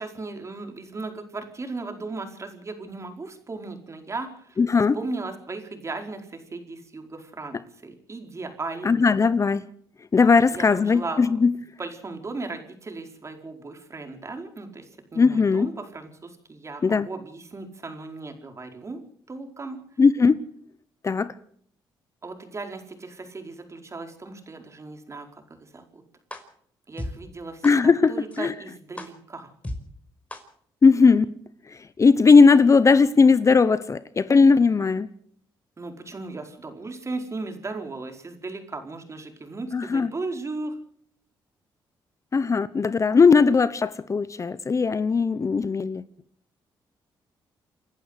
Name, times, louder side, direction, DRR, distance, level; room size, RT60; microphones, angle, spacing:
voice 1, 0.0-4.6 4.9-9.1 10.5-11.5 11.8-19.0 19.3-19.8 22.2-26.0 26.9-29.5 35.8-40.8, right 3 dB, 35° right, 4.8 m, -36 dB
voice 2, 4.6-5.0 8.8-9.6 10.1-11.5 15.1-15.7 16.8-17.1 20.0-20.5 21.0-21.4 27.6-28.5 30.8-31.3 31.7-35.1 39.7-40.1 42.3-46.0, left 4 dB, 35° left, 1.0 m, -18 dB
sound 1, 26.3-26.4 27.0-27.1 27.6-27.7 28.3-28.4 29.0-29.1 29.6-29.8 30.3-30.4, left 1 dB, 15° left, 5.0 m, -33 dB
28.5 x 11.5 x 8.2 m
cardioid pair, 80°, 9 cm